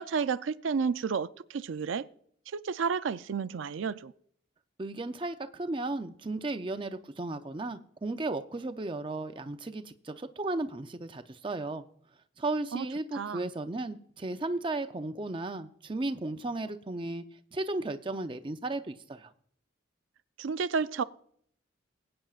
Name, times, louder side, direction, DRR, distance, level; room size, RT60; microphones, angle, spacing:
voice 1, 0.0-2.1 2.5-4.1 12.7-12.8 13.1-13.5 20.4-21.0, right 5 dB, 85° right, 0.4 m, -31 dB
voice 2, 4.8-11.8 12.4-17.2 17.5-19.3, right 2 dB, 25° right, 0.5 m, -35 dB
21.5 x 8.8 x 2.4 m
head